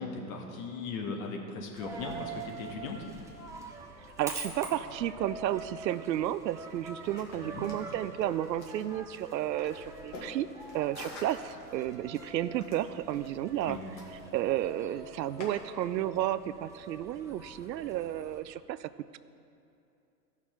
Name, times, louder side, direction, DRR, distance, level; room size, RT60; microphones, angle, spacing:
voice 1, 0.0-3.0 7.3-7.7 13.7-13.8, left 4 dB, 55° left, 1 dB, 1.7 m, -38 dB
Coin (dropping), 1.8-18.4, right 3 dB, 5° right, 0.7 m, -45 dB
voice 2, 4.2-10.5 10.7-13.8 14.3-19.2, right 12 dB, 80° right, 14 dB, 0.6 m, -32 dB
sound 1, 7.0-15.5, left 2 dB, 35° left, 1.9 m, -50 dB
15.0 x 6.0 x 4.4 m, 2.7 s
hypercardioid pair, 120°, 50 cm